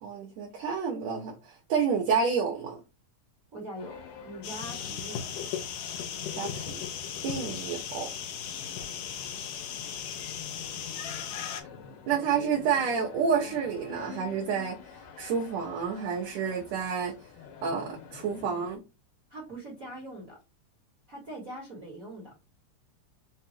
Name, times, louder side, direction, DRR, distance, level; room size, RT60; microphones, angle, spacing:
voice 1, 0.0-2.8 6.4-6.8 7.2-8.1 12.1-14.8 15.2-17.1 17.6-18.8, right 6 dB, 70° right, 1.8 m, -29 dB
voice 2, 3.5-5.3 19.3-20.4 21.1-22.4, right 1 dB, 40° right, 1.2 m, -42 dB
sound 1, 3.8-18.8, left 7 dB, 90° left, 2.6 m, -47 dB
sound 2, 4.4-11.6, left 8 dB, 70° left, 1.7 m, -37 dB
5.4 x 2.4 x 2.8 m
omnidirectional pair, 3.7 m